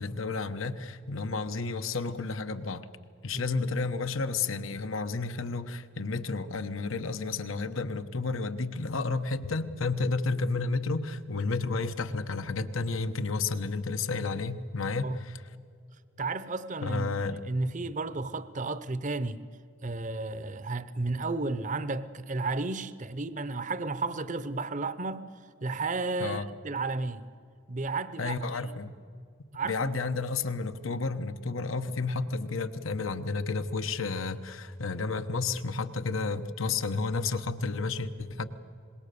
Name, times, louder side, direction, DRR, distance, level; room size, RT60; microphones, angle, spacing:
voice 1, 0.0-2.8 3.2-15.4 16.8-17.4 26.2-26.4 28.2-29.0 29.6-38.5, left 3 dB, 80° left, 1.1 m, -31 dB
voice 2, 16.2-19.5 19.8-25.3 25.6-27.3 27.7-28.8 29.5-29.9, right 3 dB, 40° right, 0.7 m, -33 dB
26.0 x 20.5 x 6.8 m
head